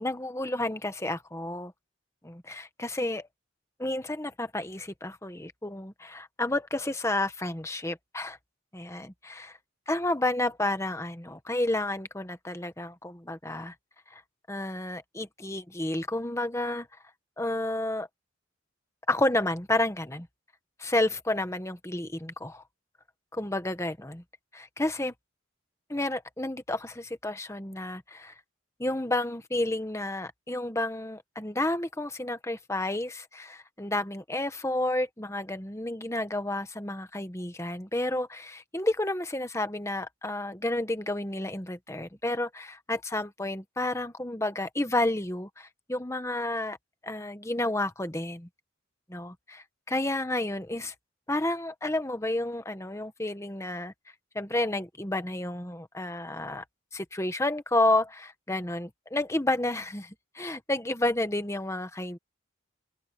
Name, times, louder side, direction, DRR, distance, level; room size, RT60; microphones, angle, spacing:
voice 1, 0.0-1.7 2.2-3.3 3.8-8.4 8.7-9.5 9.9-13.7 14.1-14.2 14.5-16.9 17.4-18.1 19.1-20.3 20.8-22.6 23.3-24.2 24.5-25.1 25.9-28.3 28.8-46.8 47.0-48.5 49.1-50.9 51.3-53.9 54.3-56.6 56.9-62.2, left 1 dB, 15° left, 1.2 m, -31 dB
open air
head